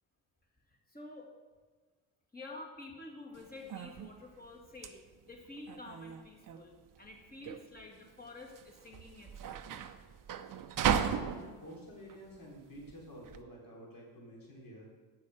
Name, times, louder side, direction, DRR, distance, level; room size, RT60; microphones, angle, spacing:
voice 1, 0.9-1.3 2.3-9.6, left 2 dB, 20° left, -1 dB, 2.2 m, -49 dB
sound 1, 3.3-13.4, right 8 dB, 45° right, 0.7 m, -37 dB
voice 2, 10.8-14.9, equal, 45° left, -3 dB, 3.3 m, -50 dB
8.8 x 6.3 x 5.6 m, 1.4 s
supercardioid pair, 70°, 46 cm